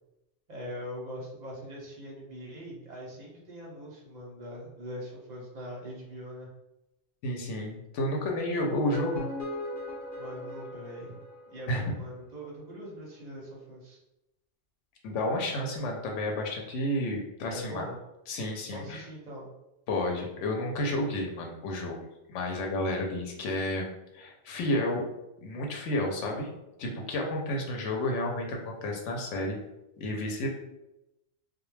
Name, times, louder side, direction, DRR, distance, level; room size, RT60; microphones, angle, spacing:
voice 1, 0.5-6.5 10.2-11.2 11.5-14.0 17.5-18.0 18.7-19.5, equal, 45° right, -4 dB, 0.6 m, -42 dB
voice 2, 7.2-9.3 11.7-11.9 15.0-17.8 18.3-19.0 19.9-22.0 22.3-23.9 24.1-25.1 25.4-26.5 26.8-29.6 30.0-30.5, left 1 dB, 90° left, 1 dB, 0.9 m, -31 dB
sound 1, 8.7-11.9, left 1 dB, 50° left, 1.0 m, -39 dB
2.2 x 2.0 x 3.0 m, 0.92 s
omnidirectional pair, 1.2 m